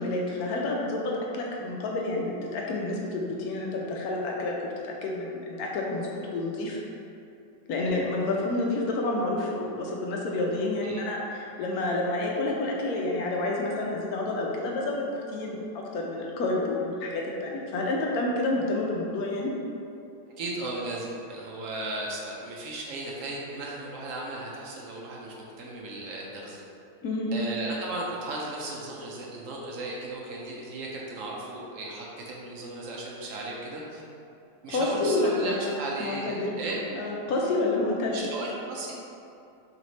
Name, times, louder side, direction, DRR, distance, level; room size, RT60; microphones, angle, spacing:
voice 1, 0.0-4.5 4.8-6.8 7.7-19.5 27.0-27.3 34.7-36.6 36.9-38.2, left 2 dB, 70° left, -2 dB, 0.9 m, -29 dB
voice 2, 20.4-26.6 27.3-34.0 34.6-36.8 38.1-38.9, right 2 dB, 75° right, -3 dB, 0.7 m, -36 dB
3.3 x 3.1 x 3.9 m, 2.6 s
omnidirectional pair, 1.9 m